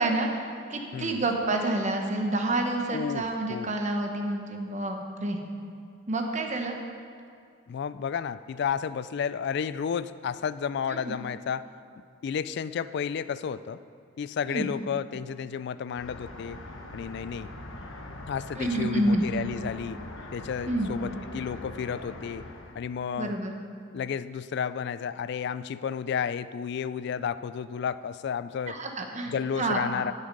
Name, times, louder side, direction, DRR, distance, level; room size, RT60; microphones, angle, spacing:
voice 1, 0.0-5.4 6.1-6.8 10.9-11.1 14.5-14.7 18.6-19.2 20.7-20.9 23.2-23.6 28.7-29.9, right 2 dB, 35° right, 3 dB, 1.0 m, -28 dB
voice 2, 0.9-1.3 2.9-3.7 7.7-11.6 12.2-13.8 14.2-16.6 16.9-17.5 18.3-20.0 20.3-22.5 22.8-23.4 23.9-28.8 29.3-30.1, left 7 dB, 60° left, 15 dB, 0.3 m, -32 dB
sound 1, 16.0-22.7, left 1 dB, 90° left, 1.1 m, -42 dB
11.5 x 6.6 x 5.3 m, 2.3 s
head